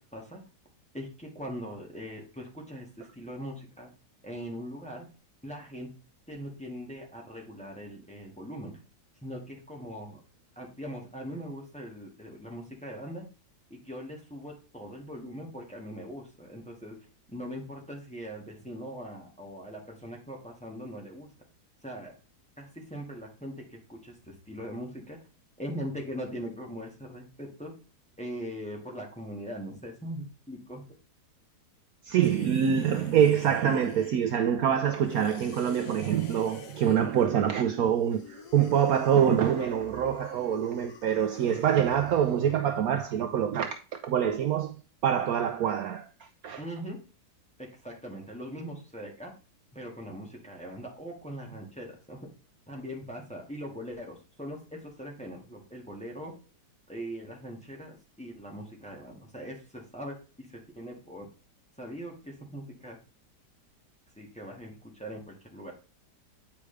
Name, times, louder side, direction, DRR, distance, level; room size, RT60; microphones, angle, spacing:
voice 1, 0.9-3.9 4.2-5.1 5.4-5.9 6.3-8.8 9.2-10.2 10.5-13.3 13.7-17.0 17.3-21.3 21.8-22.1 22.6-25.2 25.6-27.7 28.2-30.8 46.6-47.0 47.6-49.3 49.7-52.3 52.7-56.3 56.9-60.5 60.7-61.3 61.8-63.0 64.2-65.7, equal, 5° left, 1.6 m, -41 dB
voice 2, 32.0-46.6, right 9 dB, 70° right, 0.9 m, -25 dB
sound 1, 32.2-34.5 35.0-37.2 37.9-42.6, left 6 dB, 60° left, 1.3 m, -47 dB
8.6 x 4.8 x 3.3 m
omnidirectional pair, 1.8 m